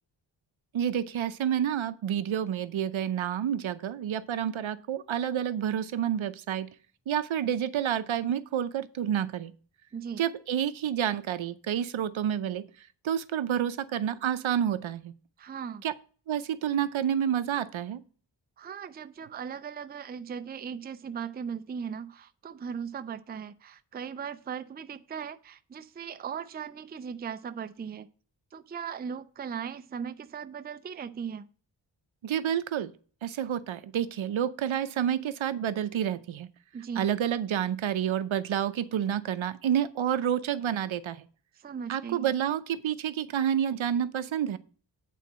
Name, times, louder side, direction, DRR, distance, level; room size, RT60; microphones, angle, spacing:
voice 1, 0.7-6.7 7.1-9.5 10.2-12.6 13.0-15.1 15.8-15.9 16.3-18.0 32.2-32.9 33.2-36.5 37.0-41.2 41.9-44.6, right 9 dB, 85° right, 13 dB, 0.7 m, -29 dB
voice 2, 15.4-15.8 18.6-28.1 28.5-31.5 36.7-37.1 41.6-42.3, right 7 dB, 25° right, 11 dB, 0.3 m, -38 dB
8.6 x 4.1 x 7.2 m, 0.40 s
wide cardioid pair, 165°, 46 cm